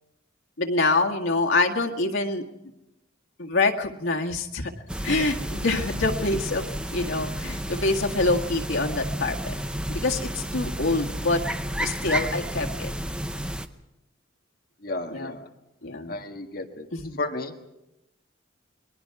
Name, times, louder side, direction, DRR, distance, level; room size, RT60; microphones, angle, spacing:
voice 1, 0.6-2.4 3.4-4.7 5.0-6.7 6.9-9.5 9.9-11.4 11.8-12.9 15.1-15.4 15.8-16.1 16.9-17.2, left 3 dB, 90° left, 1 dB, 1.8 m, -25 dB
sound 1, 4.9-13.7, equal, 5° right, 0.7 m, -31 dB
voice 2, 14.8-15.5 16.1-16.9 17.2-17.5, left 2 dB, 50° left, 3 dB, 1.8 m, -32 dB
29.5 x 21.5 x 4.8 m, 0.91 s
head